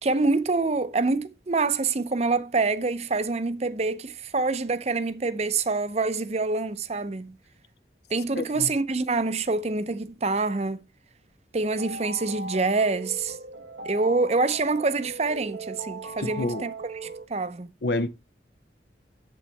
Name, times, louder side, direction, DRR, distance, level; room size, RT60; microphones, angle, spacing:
voice 1, 0.0-7.4 8.1-10.8 11.5-13.4 13.8-17.7, right 3 dB, 35° right, 0.6 m, -26 dB
voice 2, 8.4-8.7 16.2-16.6 17.8-18.1, left 2 dB, 65° left, 0.6 m, -28 dB
sound 1, 11.6-17.3, right 3 dB, 85° right, 1.0 m, -39 dB
8.3 x 7.3 x 3.3 m
head